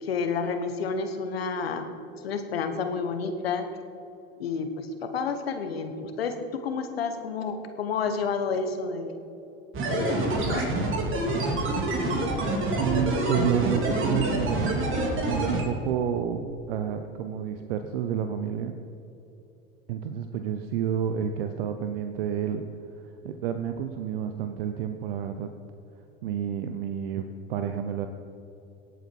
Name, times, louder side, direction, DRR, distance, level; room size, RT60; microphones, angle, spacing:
voice 1, 0.0-1.9 2.2-3.7 4.4-6.4 6.6-9.2 9.9-10.7, left 5 dB, 85° left, 7 dB, 1.2 m, -30 dB
sound 1, 9.7-15.6, right 1 dB, 45° right, 2.8 m, -26 dB
voice 2, 12.8-14.9 15.3-18.7 19.9-22.6 23.2-25.5 26.2-28.1, right 9 dB, 75° right, 8 dB, 0.8 m, -30 dB
18.0 x 8.3 x 4.6 m, 2.9 s
hypercardioid pair, 80°, 29 cm